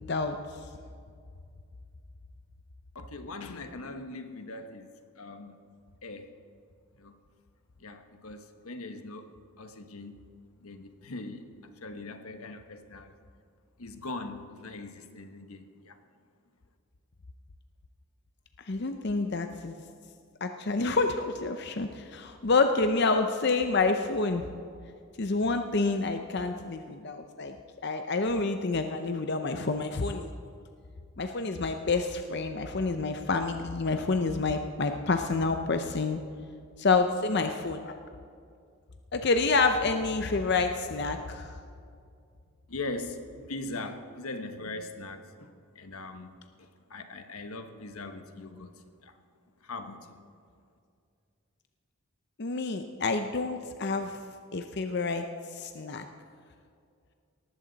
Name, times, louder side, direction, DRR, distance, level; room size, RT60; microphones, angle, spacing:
voice 1, 2.9-5.6 6.0-6.3 7.0-7.1 7.8-10.2 10.6-11.5 11.8-13.2 13.8-16.0 42.7-49.2 49.6-50.2, left 2 dB, 85° left, 7 dB, 1.2 m, -41 dB
voice 2, 18.7-19.8 20.4-24.4 25.2-27.6 27.8-30.3 31.2-36.2 36.8-38.0 39.1-41.5 52.4-54.2 54.5-55.3 55.6-56.0, left 3 dB, 50° left, 7 dB, 0.6 m, -28 dB
18.5 x 14.5 x 4.0 m, 2.3 s
head